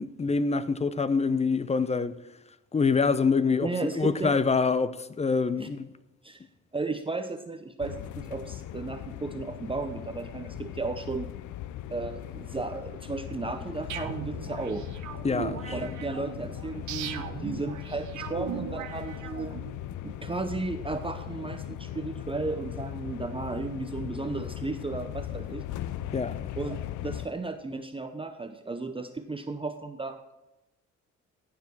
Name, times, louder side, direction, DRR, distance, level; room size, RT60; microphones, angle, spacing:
voice 1, 0.0-2.2 2.7-5.9 15.2-16.0 26.1-26.5, left 4 dB, 20° left, 0.6 m, -26 dB
voice 2, 3.6-4.4 5.6-5.7 6.2-6.4 6.7-11.3 11.9-14.9 15.7-19.6 20.0-25.6 26.6-30.4, right 3 dB, 20° right, 0.7 m, -34 dB
sound 1, 7.8-27.3, left 12 dB, 80° left, 0.6 m, -39 dB
sound 2, 13.9-19.7, right 9 dB, 75° right, 0.9 m, -39 dB
15.0 x 5.0 x 4.7 m
cardioid pair, 90°, 30 cm